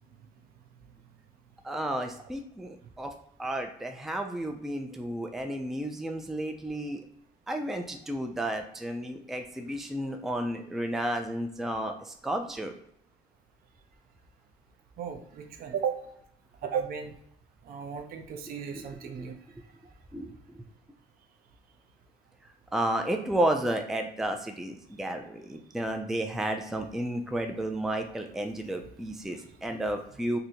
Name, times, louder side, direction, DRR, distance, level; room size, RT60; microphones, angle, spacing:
voice 1, 1.6-3.1 3.4-7.0 7.5-12.8 18.7-19.1 20.1-20.6 22.7-30.4, right 1 dB, ahead, 5 dB, 0.4 m, -32 dB
voice 2, 15.0-16.0 16.6-17.1 17.6-19.4, right 7 dB, 60° right, 5 dB, 0.6 m, -34 dB
2.7 x 2.5 x 4.2 m, 0.71 s
cardioid pair, 110°, 17 cm